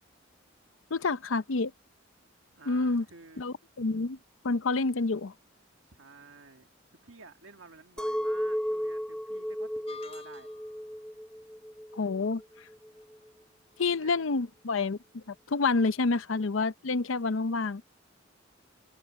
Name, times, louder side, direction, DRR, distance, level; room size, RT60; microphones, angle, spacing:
voice 1, 0.9-1.7 2.7-3.0 3.4-4.2 4.4-5.3 11.9-12.4 13.8-17.8, left 3 dB, 80° left, 0.7 m, -28 dB
voice 2, 2.6-3.5 5.8-6.7 7.0-10.5 14.0-14.2, right 4 dB, 80° right, 1.8 m, -52 dB
Chink clink, 8.0-13.2, equal, 5° left, 0.7 m, -34 dB
sound 1, 9.9-10.8, left 6 dB, 30° left, 4.5 m, -48 dB
open air
head